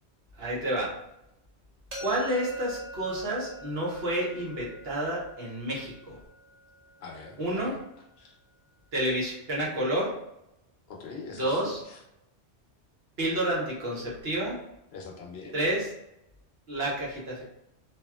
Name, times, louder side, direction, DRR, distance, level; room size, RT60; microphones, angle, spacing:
voice 1, 0.4-0.9 2.0-6.2 7.4-7.7 8.9-10.1 11.4-11.8 13.2-14.6 15.5-15.9 16.7-17.4, right 1 dB, 65° right, -5 dB, 1.1 m, -29 dB
sound 1, 1.9-7.7, right 1 dB, 40° right, 0.8 m, -45 dB
voice 2, 7.0-7.8 8.2-8.4 10.9-12.0 14.9-15.6, left 4 dB, 70° left, 0 dB, 0.8 m, -43 dB
2.8 x 2.6 x 2.3 m, 0.84 s
omnidirectional pair, 1.1 m